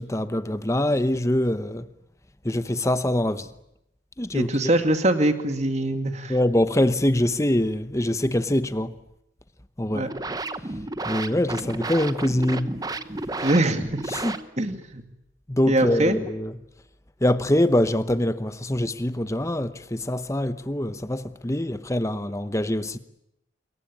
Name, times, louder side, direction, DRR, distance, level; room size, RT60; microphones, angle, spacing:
voice 1, 0.0-1.9 2.4-3.5 4.2-4.7 6.3-8.9 9.8-10.1 11.0-12.8 14.1-14.4 15.5-16.6 17.2-23.0, left 1 dB, 15° left, 0.9 m, -24 dB
voice 2, 4.3-6.4 9.9-10.1 13.4-14.0 14.6-15.0 15.7-16.2, right 1 dB, 35° right, 2.2 m, -23 dB
sound 1, 9.8-14.8, right 2 dB, 20° right, 0.9 m, -33 dB
27.0 x 22.5 x 8.8 m
head